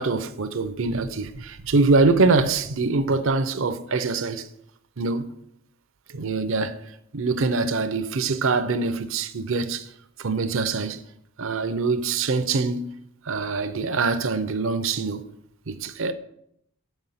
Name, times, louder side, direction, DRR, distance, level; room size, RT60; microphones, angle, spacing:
voice 1, 0.0-4.5 5.0-5.3 6.1-6.8 7.1-9.9 10.2-11.0 11.4-12.9 13.3-15.3 15.7-16.1, right 3 dB, 65° right, 0.6 m, -24 dB
8.0 x 4.6 x 5.7 m
head